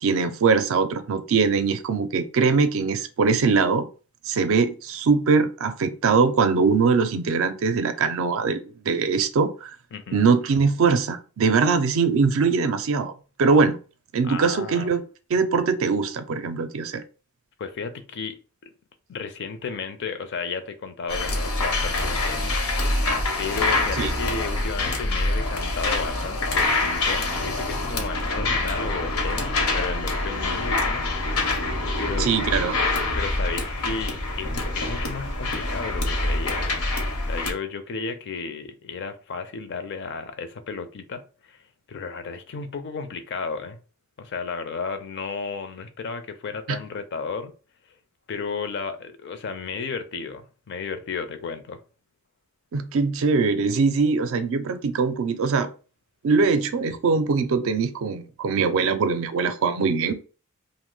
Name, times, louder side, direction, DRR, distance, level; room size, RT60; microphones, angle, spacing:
voice 1, 0.0-3.9 4.3-9.7 10.1-13.1 13.4-13.8 14.1-15.0 15.3-17.0 24.0-24.1 32.2-32.8 46.7-46.8 52.7-55.7 56.2-60.1, right 4 dB, 65° right, 0.4 m, -22 dB
voice 2, 9.9-10.3 14.2-14.9 17.6-18.4 18.6-18.7 19.1-22.6 23.4-31.1 32.0-32.3 33.2-36.7 37.2-41.6 41.9-43.8 44.2-47.5 48.3-51.8, left 5 dB, 50° left, 0.4 m, -33 dB
sound 1, 21.1-37.5, left 2 dB, 85° left, 0.8 m, -25 dB
2.7 x 2.0 x 3.7 m
head